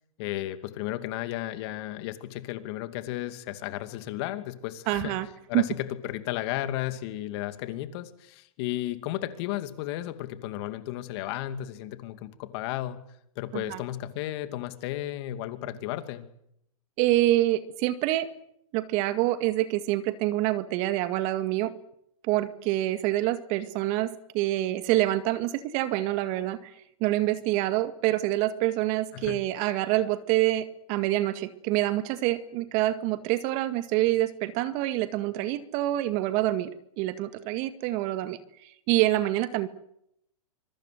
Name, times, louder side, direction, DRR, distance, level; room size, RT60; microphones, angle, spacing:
voice 1, 0.2-5.2 5.5-13.0 13.4-16.3 29.1-29.4, left 14 dB, 45° left, 10 dB, 2.6 m, -34 dB
voice 2, 4.9-5.3 5.5-5.6 13.5-13.8 17.0-18.3 18.7-21.7 22.3-26.7 27.0-36.7 37.0-39.7, right 15 dB, 40° right, 11 dB, 2.0 m, -26 dB
25.5 x 22.5 x 7.9 m, 0.77 s
hypercardioid pair, 125°, 19 cm